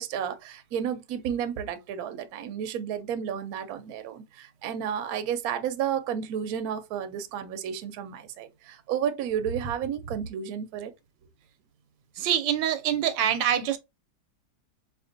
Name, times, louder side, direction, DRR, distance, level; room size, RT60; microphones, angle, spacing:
voice 1, 0.0-10.9, right 8 dB, 70° right, 0.9 m, -32 dB
voice 2, 12.2-13.8, right 10 dB, 85° right, 1.3 m, -25 dB
4.3 x 2.5 x 2.5 m
omnidirectional pair, 1.9 m